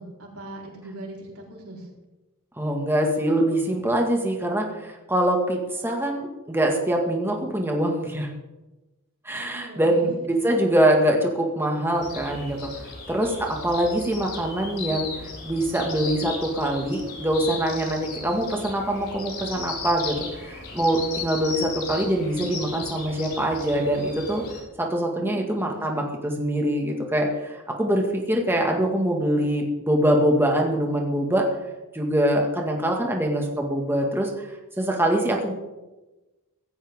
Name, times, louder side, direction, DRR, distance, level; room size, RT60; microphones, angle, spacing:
voice 1, 0.0-1.9 9.3-10.2 25.2-26.0, right 1 dB, 70° right, -2 dB, 4.4 m, -40 dB
voice 2, 2.6-8.3 9.2-12.7 13.1-13.3 13.6-15.1 15.4-24.4 24.8-31.4 31.9-35.5, right 1 dB, 10° right, 0 dB, 1.9 m, -24 dB
sound 1, 11.9-24.6, left 4 dB, 50° left, 5.4 m, -36 dB
16.0 x 16.0 x 3.7 m, 1.1 s
head